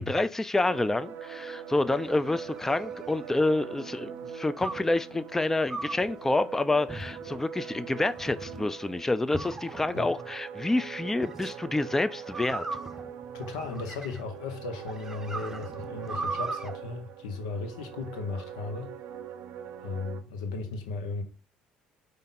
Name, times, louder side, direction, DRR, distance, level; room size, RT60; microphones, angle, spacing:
voice 1, 0.0-12.7, left 2 dB, 10° left, 0.3 m, -28 dB
sound 1, 0.6-20.2, right 8 dB, 70° right, 0.5 m, -42 dB
sound 2, 1.8-3.6 4.6-5.0 5.7-6.1 6.9-7.4 8.0-8.6 9.3-10.1 11.2-11.5 12.3-14.4 14.9-16.7, right 3 dB, 10° right, 0.8 m, -38 dB
voice 2, 13.3-18.9 19.8-21.2, left 3 dB, 85° left, 0.8 m, -36 dB
5.1 x 2.5 x 4.1 m
hypercardioid pair, 65°, 4 cm